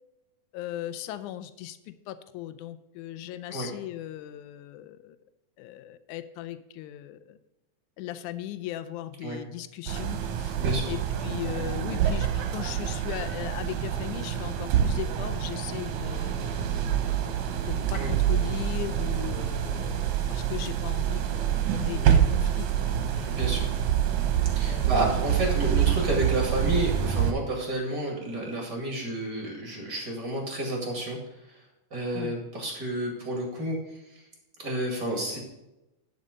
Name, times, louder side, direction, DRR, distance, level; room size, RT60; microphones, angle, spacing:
voice 1, 0.5-5.2 5.6-7.4 8.0-10.6 10.9-16.9 17.7-23.5 24.6-25.0 32.1-32.3, left 13 dB, 80° left, 11 dB, 2.1 m, -38 dB
sound 1, 9.9-27.3, right 9 dB, 70° right, 2.2 m, -26 dB
voice 2, 10.6-10.9 17.9-18.1 23.2-23.7 24.5-31.2 31.5-31.6 31.9-34.2 34.6-35.4, right 1 dB, 35° right, 0 dB, 2.5 m, -30 dB
11.0 x 5.5 x 5.1 m, 0.96 s
omnidirectional pair, 3.6 m